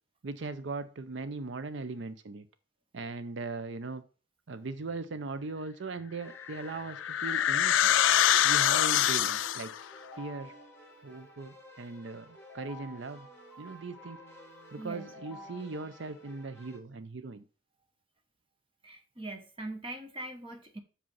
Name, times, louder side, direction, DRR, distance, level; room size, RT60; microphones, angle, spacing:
voice 1, 0.2-2.5 2.9-4.0 4.5-7.9 8.4-9.7 10.2-10.5 11.0-13.3 13.6-14.2 14.7-17.4, right 3 dB, 60° right, 0.5 m, -39 dB
Keyboard (musical), 6.2-16.8, left 1 dB, 10° left, 2.0 m, -52 dB
sound 1, 6.4-9.8, left 11 dB, 65° left, 0.3 m, -25 dB
voice 2, 14.8-15.1 18.8-20.8, right 2 dB, 25° right, 1.2 m, -41 dB
6.8 x 5.2 x 5.5 m
head